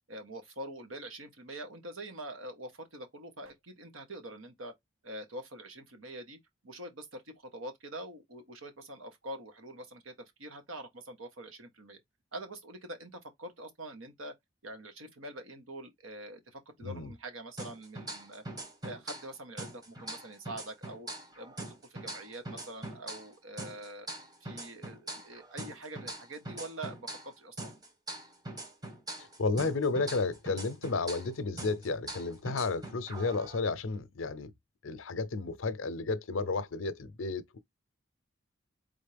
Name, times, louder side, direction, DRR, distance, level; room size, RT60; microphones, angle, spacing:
voice 1, 0.1-4.7 5.0-6.4 6.6-10.1 10.4-12.0 12.3-14.3 14.6-18.4 18.8-21.1 21.4-21.5 21.9-27.7, right 1 dB, 85° right, 1.4 m, -45 dB
voice 2, 16.8-17.1 29.2-34.5 34.8-37.6, left 3 dB, 75° left, 0.6 m, -32 dB
sound 1, 17.6-19.3 19.6-23.3 23.6-27.3 27.6-31.3 31.6-33.6, right 1 dB, 20° right, 1.2 m, -43 dB
4.2 x 3.6 x 3.4 m
head